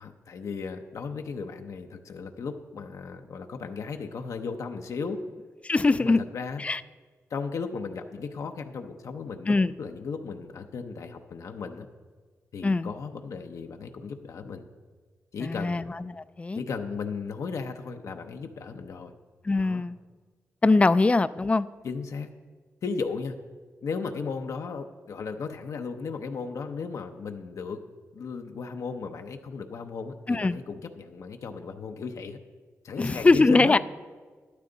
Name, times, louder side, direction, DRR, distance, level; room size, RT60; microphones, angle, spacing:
voice 1, 0.0-5.2 5.9-6.6 7.3-11.9 12.5-14.7 15.3-15.8 16.6-19.1 19.6-19.9 21.8-22.3 22.8-23.4 23.8-27.8 28.1-32.4 32.8-33.8, left 5 dB, 75° left, 5 dB, 0.7 m, -35 dB
voice 2, 5.6-6.2 6.6-6.8 9.5-9.7 12.6-12.9 15.4-16.6 19.4-19.9 20.6-21.7 30.3-30.6 33.0-33.8, left 3 dB, 25° left, 15 dB, 0.3 m, -22 dB
13.0 x 11.5 x 3.9 m, 1.5 s
wide cardioid pair, 110°, 5 cm